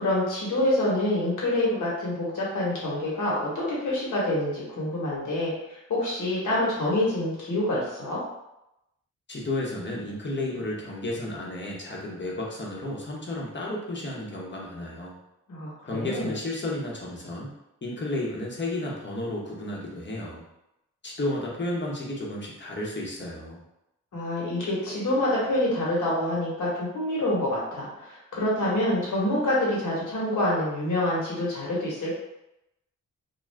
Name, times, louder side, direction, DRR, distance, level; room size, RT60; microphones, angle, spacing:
voice 1, 0.0-8.2 15.5-16.3 24.1-32.1, left 1 dB, 75° left, -6 dB, 1.3 m, -27 dB
voice 2, 9.3-15.2 15.9-17.5 17.8-20.5 21.0-23.6, left 1 dB, 35° left, -3 dB, 1.0 m, -32 dB
2.5 x 2.3 x 3.2 m, 0.88 s
cardioid pair, 60°, 31 cm